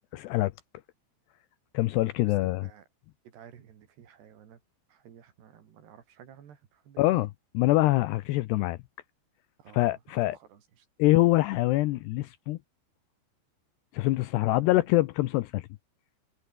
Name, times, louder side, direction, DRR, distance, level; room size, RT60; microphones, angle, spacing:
voice 1, 0.1-0.5 1.7-2.7 7.0-7.3 7.5-8.8 9.7-10.4 11.0-12.6 13.9-15.7, left 18 dB, 85° left, 2.5 m, -24 dB
voice 2, 2.2-2.9 3.2-4.6 4.9-7.1 9.6-10.9 14.5-14.9, right 8 dB, 60° right, 4.8 m, -53 dB
omnidirectional pair, 5.5 m